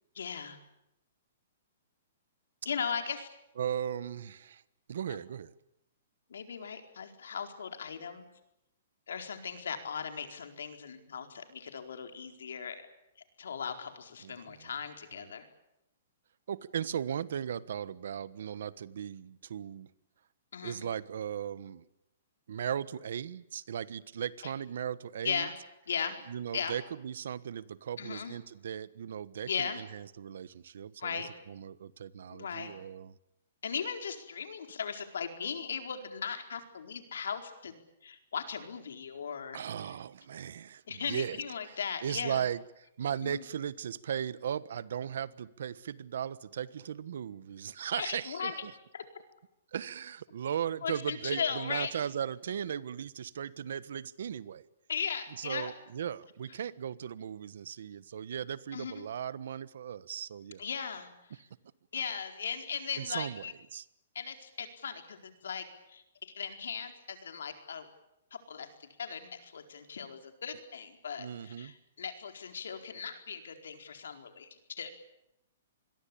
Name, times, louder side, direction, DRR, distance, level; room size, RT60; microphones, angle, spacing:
voice 1, 0.2-0.6 2.6-3.3 6.3-8.3 9.1-12.8 13.4-15.5 20.5-20.8 24.4-24.5 25.2-25.6 25.9-26.2 26.5-26.8 28.0-28.4 29.4-29.8 31.0-31.3 32.3-32.8 33.6-39.6 40.9-42.4 43.2-43.4 48.0-48.5 48.9-49.0 50.8-51.9 54.9-55.7 58.7-59.0 60.6-61.1 61.9-63.5 64.1-67.9 68.3-68.7 69.0-75.0, left 6 dB, 85° left, 4.4 m, -38 dB
voice 2, 3.6-4.6 4.9-5.5 14.2-14.7 16.5-19.9 20.6-21.8 22.5-25.5 26.3-33.1 39.5-41.4 42.0-48.7 49.7-54.7 55.4-60.7 61.4-61.5 63.0-63.8 71.2-71.7, right 8 dB, 70° right, 1.3 m, -37 dB
26.5 x 22.0 x 8.7 m
hypercardioid pair, 160°, 0 cm